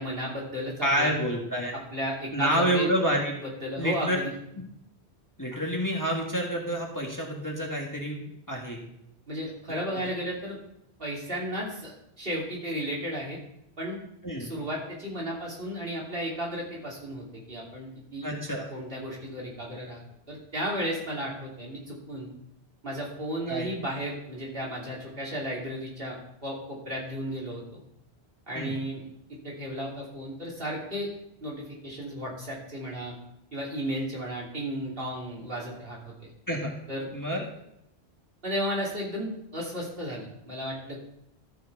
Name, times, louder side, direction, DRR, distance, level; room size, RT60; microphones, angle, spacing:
voice 1, 0.0-1.1 1.7-2.9 3.4-4.3 9.3-10.6 11.0-13.4 13.8-14.0 14.4-18.3 18.7-20.0 20.3-22.3 22.8-27.8 28.5-29.1 29.4-31.1 31.4-33.1 33.5-36.3 36.9-37.1 38.4-41.0, equal, 60° right, -4 dB, 3.1 m, -34 dB
voice 2, 0.8-1.7 2.3-3.3 3.8-4.2 5.4-8.8 9.9-10.0 14.2-14.5 18.2-18.7 23.5-23.7 28.5-28.7 36.5-36.7 37.1-37.4, equal, 15° left, -1 dB, 1.7 m, -28 dB
13.5 x 6.4 x 4.6 m, 0.80 s
omnidirectional pair, 1.1 m